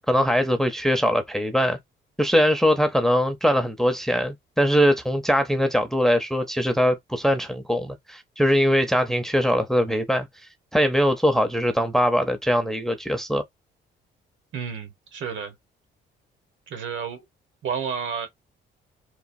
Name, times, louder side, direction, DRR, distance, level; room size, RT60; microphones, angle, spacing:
voice 1, 0.1-1.8 2.2-10.3 10.7-13.4, equal, ahead, 0.6 m, -21 dB
voice 2, 14.5-15.5 16.7-17.2 17.6-18.3, right 6 dB, 70° right, 1.1 m, -31 dB
3.1 x 2.1 x 2.6 m
cardioid pair, 90°, 20 cm